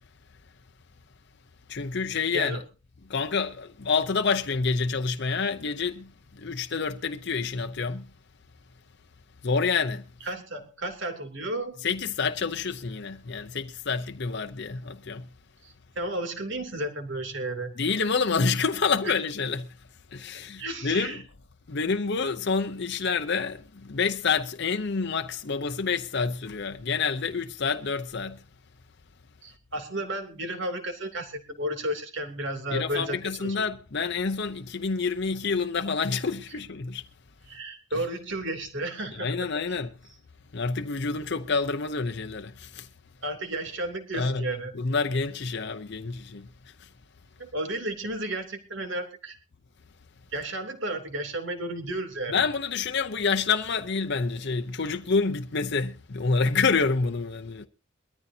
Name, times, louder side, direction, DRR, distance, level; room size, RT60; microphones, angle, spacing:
voice 1, 1.7-2.6 3.1-8.1 9.4-10.0 11.8-15.2 17.8-19.7 20.1-21.2 21.7-28.4 32.7-37.0 39.1-39.9 40.5-42.9 44.1-44.5 44.7-46.5 46.8-46.9 52.3-57.7, left 4 dB, 55° left, 0.7 m, -28 dB
voice 2, 2.3-2.6 10.2-11.8 15.6-17.7 19.0-19.2 20.3-21.2 29.4-33.6 37.5-39.3 43.2-44.7 47.4-49.3 50.3-52.4, right 1 dB, 60° right, 3.1 m, -33 dB
22.0 x 14.0 x 2.8 m
head